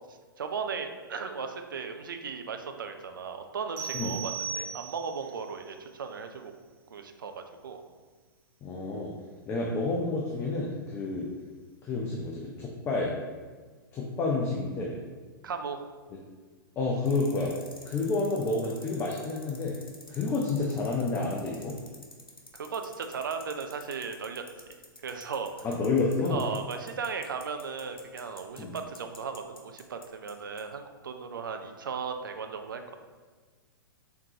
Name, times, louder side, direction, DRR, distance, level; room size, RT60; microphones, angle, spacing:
voice 1, 0.4-6.5 6.9-7.8 15.4-15.8 22.5-24.4 25.0-25.5 26.3-32.8, right 5 dB, 65° right, 6 dB, 0.5 m, -36 dB
sound 1, 3.8-5.3, right 7 dB, 35° right, 0.9 m, -36 dB
voice 2, 8.6-9.1 9.5-11.3 11.8-13.1 13.9-15.0 16.8-17.5 17.8-19.8 20.1-21.8 25.6-26.5 28.6-28.8, left 3 dB, 20° left, -2 dB, 0.5 m, -29 dB
sound 2, 17.1-30.3 30.6-30.7, left 2 dB, 85° left, 0.7 m, -49 dB
4.6 x 3.7 x 2.7 m, 1.4 s
figure-of-eight pair, 110°, 12 cm